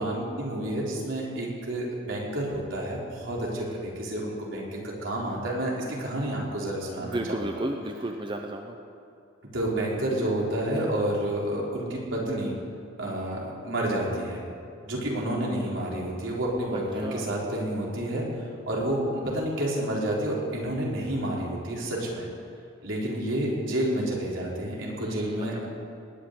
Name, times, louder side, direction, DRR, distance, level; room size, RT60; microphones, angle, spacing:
voice 1, 0.0-7.5 9.5-12.5 13.0-14.4 14.8-18.3 18.7-22.3 22.8-25.7, right 1 dB, 75° right, -4 dB, 4.1 m, -29 dB
voice 2, 3.4-3.8 6.9-8.8 16.7-17.3 25.0-25.4, right 1 dB, 25° right, 3 dB, 0.8 m, -34 dB
19.5 x 6.6 x 9.7 m, 2.7 s
head